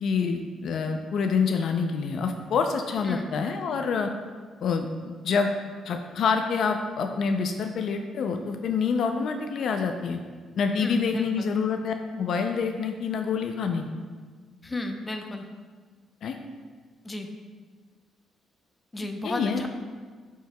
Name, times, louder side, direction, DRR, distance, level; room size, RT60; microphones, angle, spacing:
voice 1, 0.0-4.1 4.6-4.9 5.2-5.5 5.8-10.2 10.6-13.8 16.2-16.4 19.0-19.7, left 5 dB, 65° left, 5 dB, 0.4 m, -27 dB
voice 2, 10.8-11.5 14.6-15.4 17.0-17.3 18.9-19.7, left 2 dB, 20° left, 5 dB, 0.6 m, -33 dB
10.0 x 4.7 x 2.2 m, 1.5 s
cardioid pair, 90°, 0 cm